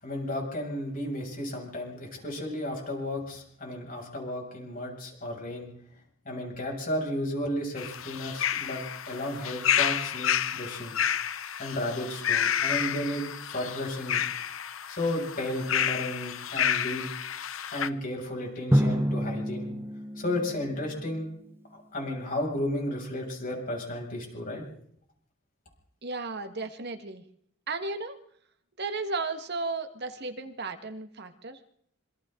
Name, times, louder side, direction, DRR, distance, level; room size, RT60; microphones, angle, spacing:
voice 1, 0.0-5.7 6.3-11.0 11.6-14.2 14.9-17.0 17.7-19.7 20.2-21.3 21.9-24.6, left 1 dB, 45° left, 0 dB, 7.0 m, -33 dB
sound 1, 7.8-17.9, left 9 dB, 75° left, 0.9 m, -30 dB
Drum, 18.7-21.4, equal, 10° right, 0.8 m, -28 dB
voice 2, 26.0-27.2 27.7-28.2 28.8-31.6, right 3 dB, 55° right, 7 dB, 1.7 m, -34 dB
27.0 x 25.0 x 3.9 m, 0.66 s
head